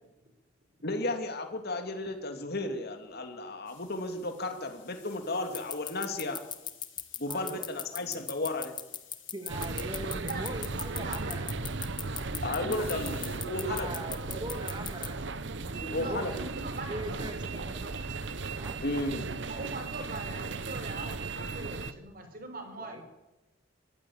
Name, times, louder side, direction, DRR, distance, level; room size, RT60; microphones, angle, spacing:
voice 1, 0.8-6.4 7.2-8.7 12.4-13.9 15.9-16.3 18.8-19.3, left 2 dB, 55° left, 5 dB, 2.7 m, -34 dB
sound 1, 3.7-11.0 12.7-13.4, left 10 dB, 85° left, 5.1 m, -56 dB
sound 2, 5.5-15.1, left 8 dB, 25° left, 1.4 m, -36 dB
voice 2, 7.3-7.7 8.0-8.2 9.3-11.5 12.3-12.9 13.6-15.2 15.7-16.3 16.9-17.9 18.5-18.8 22.8-23.0, right 1 dB, 25° right, 6 dB, 2.4 m, -41 dB
sound 3, 9.5-21.9, right 3 dB, 70° right, 1.1 m, -36 dB
voice 3, 10.2-11.4 15.9-17.3 19.4-23.0, right 2 dB, 50° right, 6 dB, 4.9 m, -41 dB
23.5 x 15.5 x 8.8 m, 0.99 s
head